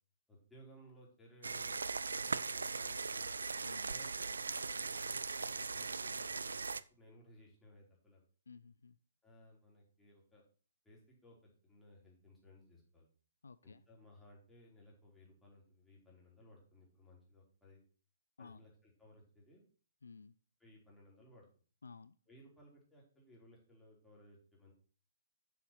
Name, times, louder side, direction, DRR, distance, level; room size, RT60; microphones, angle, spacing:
voice 1, 0.3-3.4 3.9-8.2 9.2-10.4 10.8-13.1 13.6-17.8 18.4-19.7 20.6-21.5 22.3-24.7, equal, 5° left, -4 dB, 3.8 m, -61 dB
sound 1, 1.4-6.8, right 4 dB, 75° right, 0.4 m, -39 dB
voice 2, 8.5-8.9 13.4-13.8 18.4-18.6 20.0-20.3 21.8-22.2, left 5 dB, 70° left, 15 dB, 0.4 m, -54 dB
7.3 x 7.0 x 5.8 m, 0.40 s
figure-of-eight pair, 125°, 0 cm